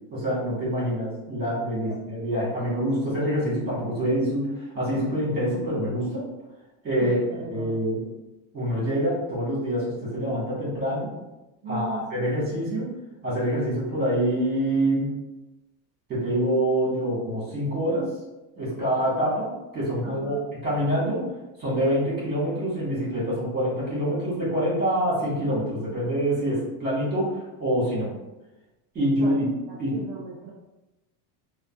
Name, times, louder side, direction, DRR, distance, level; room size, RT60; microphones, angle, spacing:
voice 1, 0.1-6.2 6.8-7.1 7.5-8.0 8.5-11.1 11.7-12.9 13.2-15.1 16.1-18.1 18.6-21.3 21.6-28.1 28.9-29.4 29.8-30.0, equal, 20° right, -7 dB, 1.5 m, -26 dB
voice 2, 7.0-7.7 11.6-12.0 20.0-20.5 29.2-29.4 29.7-30.5, right 4 dB, 60° right, -2 dB, 0.6 m, -36 dB
3.6 x 2.1 x 2.4 m, 1.0 s
cardioid pair, 155°, 46 cm